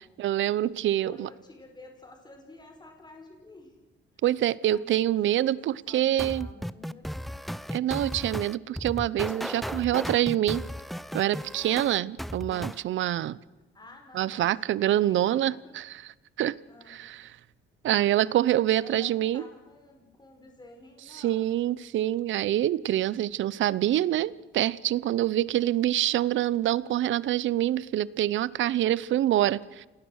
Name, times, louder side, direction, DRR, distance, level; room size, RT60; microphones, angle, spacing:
voice 1, 0.0-1.3 4.2-6.5 7.7-10.6 11.1-13.4 14.1-16.0 16.4-16.6 16.9-17.3 17.8-19.4 21.1-29.9, right 13 dB, 75° right, 21 dB, 0.8 m, -26 dB
voice 2, 0.7-3.7 4.1-4.2 4.6-7.4 13.7-14.5 15.0-15.7 16.7-17.0 18.8-21.5 26.8-27.3, left 2 dB, 20° left, 3 dB, 4.8 m, -51 dB
sound 1, 6.2-12.8, equal, ahead, 0.6 m, -35 dB
28.0 x 19.0 x 6.5 m, 1.1 s
cardioid pair, 90°, 20 cm